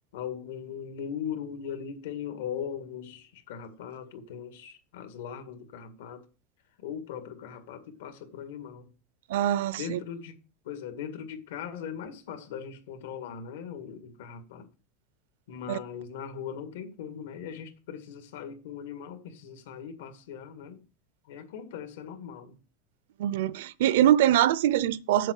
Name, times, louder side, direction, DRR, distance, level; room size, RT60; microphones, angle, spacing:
voice 1, 0.1-6.2 6.8-8.9 9.7-10.4 10.6-14.7 15.5-20.9 21.3-22.6, left 8 dB, 85° left, 2.0 m, -39 dB
voice 2, 9.3-10.0 15.7-15.8 23.2-25.3, right 11 dB, 70° right, 0.6 m, -23 dB
7.6 x 7.4 x 6.5 m
supercardioid pair, 180°, 0 cm